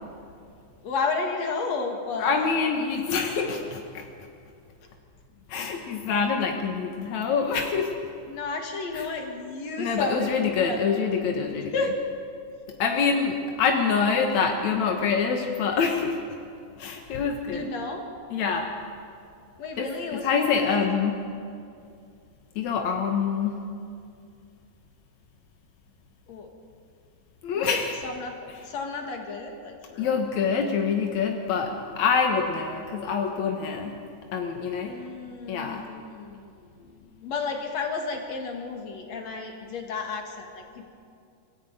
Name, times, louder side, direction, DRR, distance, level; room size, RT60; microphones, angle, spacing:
voice 1, 0.8-2.5 5.5-5.8 8.3-10.8 11.7-12.0 17.5-18.0 19.6-20.8 26.3-26.5 27.5-30.1 34.9-40.9, left 4 dB, 45° left, 2 dB, 2.7 m, -32 dB
voice 2, 2.2-4.0 5.5-7.9 8.9-9.1 9.8-11.9 12.8-16.2 16.8-17.7 18.3-18.7 19.8-21.2 22.6-23.6 27.4-27.9 30.0-34.0 34.3-35.0 35.5-35.8, left 5 dB, 70° left, 2 dB, 1.7 m, -26 dB
25.0 x 14.0 x 9.2 m, 2.4 s
omnidirectional pair, 5.3 m